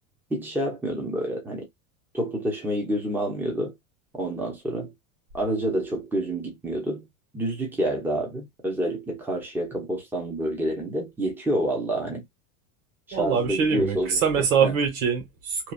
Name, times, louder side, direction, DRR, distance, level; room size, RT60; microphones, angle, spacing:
voice 1, 0.3-1.6 2.1-3.8 4.1-4.9 5.3-7.1 7.3-12.2 13.1-14.7, right 1 dB, 5° right, 0.8 m, -28 dB
voice 2, 13.1-15.7, right 6 dB, 85° right, 1.6 m, -24 dB
2.9 x 2.4 x 2.4 m
supercardioid pair, 145°, 41 cm